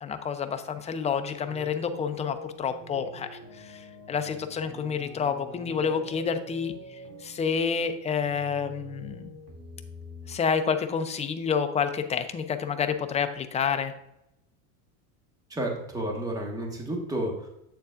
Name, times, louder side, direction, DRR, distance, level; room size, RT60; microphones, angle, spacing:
voice 1, 0.0-6.7 7.2-9.3 10.3-13.9, left 6 dB, 15° left, 7 dB, 0.5 m, -29 dB
sound 1, 1.4-10.4, left 1 dB, 45° right, 2.5 m, -45 dB
voice 2, 15.5-17.5, right 1 dB, 10° right, 1 dB, 1.3 m, -31 dB
8.0 x 6.9 x 2.5 m, 0.81 s
supercardioid pair, 125°, 40 cm